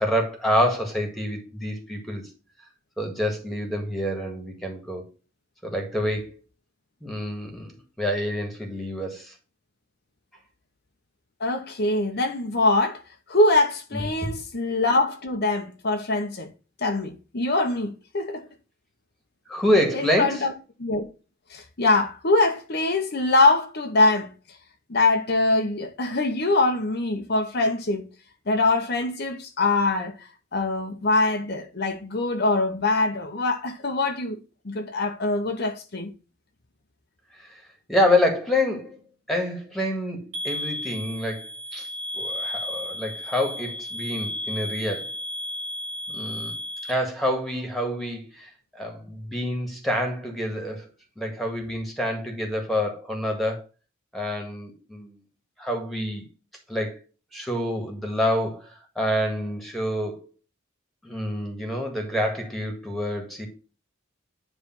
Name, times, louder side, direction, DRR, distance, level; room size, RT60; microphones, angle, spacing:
voice 1, 0.0-2.2 3.0-5.0 5.6-6.4 7.0-7.7 8.0-9.3 13.9-14.1 19.5-20.5 37.9-39.0 39.3-41.9 42.2-45.1 46.1-46.6 46.9-50.8 51.2-53.6 54.1-55.2 55.6-56.2 56.7-57.0 57.3-58.7 59.0-60.3 61.0-63.5, left 1 dB, ahead, 1.8 m, -27 dB
voice 2, 11.4-13.0 13.3-16.5 16.8-18.4 19.9-20.5 20.8-21.1 21.5-24.3 24.9-28.1 28.5-34.4 34.6-36.1, left 2 dB, 50° left, 0.8 m, -23 dB
sound 1, 40.3-46.9, left 1 dB, 85° right, 1.7 m, -33 dB
9.7 x 3.3 x 5.9 m
head